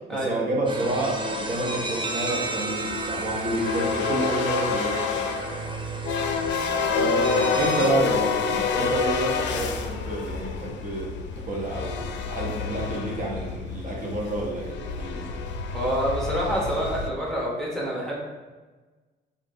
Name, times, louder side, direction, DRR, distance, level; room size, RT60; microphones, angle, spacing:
voice 1, 0.1-5.3 6.9-11.2 11.4-15.3, right 1 dB, 40° right, -3 dB, 1.0 m, -29 dB
sound 1, 0.7-7.9, right 2 dB, 25° right, 0.5 m, -32 dB
sound 2, 2.7-17.1, left 5 dB, 65° left, 0.4 m, -28 dB
voice 2, 7.1-7.5 15.7-18.2, equal, ahead, -4 dB, 1.1 m, -28 dB
5.2 x 2.6 x 2.6 m, 1.3 s
cardioid pair, 90°, 20 cm